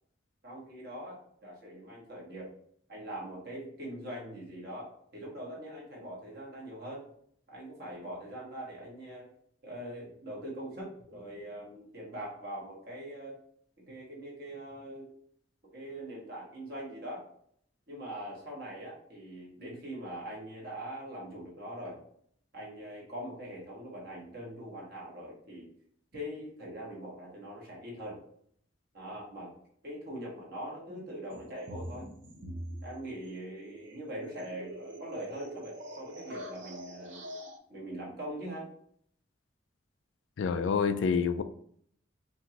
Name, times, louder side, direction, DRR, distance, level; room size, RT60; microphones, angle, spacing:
voice 1, 0.4-2.5 2.9-7.0 7.5-9.3 9.6-13.3 13.8-15.1 15.7-17.2 17.9-22.0 22.5-25.7 26.1-28.2 28.9-29.5 29.8-32.1 32.8-37.2 37.7-38.7, right 1 dB, 55° right, 1.7 m, -42 dB
sound 1, 31.3-37.6, equal, 75° right, 0.7 m, -44 dB
voice 2, 40.4-41.4, left 6 dB, 85° left, 0.4 m, -27 dB
5.2 x 2.6 x 2.9 m
head